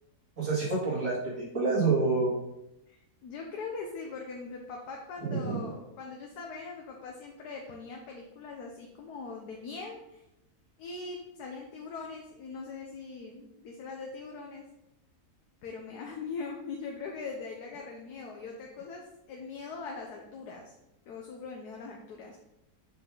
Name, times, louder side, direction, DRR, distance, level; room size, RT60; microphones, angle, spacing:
voice 1, 0.4-2.3 5.2-5.6, right 3 dB, 55° right, -5 dB, 2.6 m, -28 dB
voice 2, 2.9-10.2 10.8-14.6 15.6-20.7 21.1-22.4, left 4 dB, 85° left, 0 dB, 1.4 m, -41 dB
7.1 x 4.9 x 3.8 m, 0.85 s
omnidirectional pair, 1.7 m